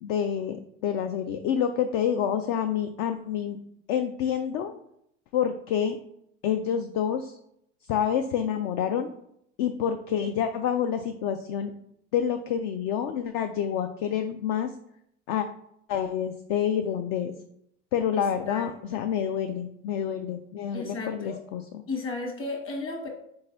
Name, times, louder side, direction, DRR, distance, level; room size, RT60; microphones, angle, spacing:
voice 1, 0.0-3.6 3.9-4.7 5.3-6.0 6.4-7.4 7.9-9.1 9.6-11.7 12.1-14.7 15.3-15.5 15.9-17.3 17.9-21.8, left 8 dB, 55° left, 7 dB, 0.5 m, -28 dB
voice 2, 18.1-19.0 20.7-21.4 21.9-23.1, left 3 dB, 35° left, 1 dB, 1.5 m, -35 dB
4.4 x 3.9 x 2.6 m, 0.72 s
hypercardioid pair, 80°, 39 cm